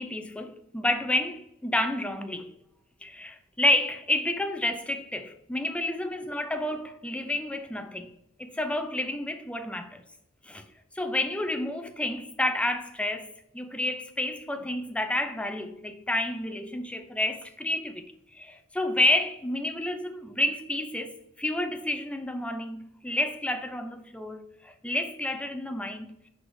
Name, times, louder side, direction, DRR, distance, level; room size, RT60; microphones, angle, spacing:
voice 1, 0.0-2.5 3.0-8.1 8.4-10.0 10.4-10.6 11.0-18.1 18.3-26.2, left 1 dB, 5° left, 0.5 m, -30 dB
4.9 x 4.1 x 4.7 m
head